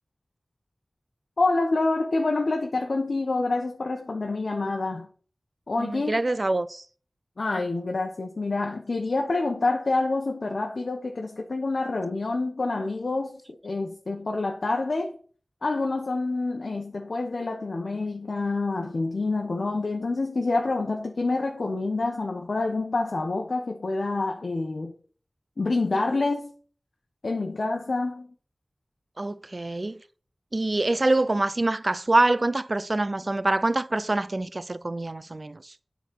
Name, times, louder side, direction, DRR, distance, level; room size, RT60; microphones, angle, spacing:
voice 1, 1.4-5.1 5.7-6.2 7.4-15.2 15.6-24.9 25.6-26.5 27.2-28.3, left 3 dB, 85° left, 1.0 m, -27 dB
voice 2, 5.8-6.8 29.2-30.0 30.5-35.7, right 2 dB, 50° right, 0.4 m, -25 dB
9.2 x 4.1 x 6.2 m
wide cardioid pair, 50°, 0 cm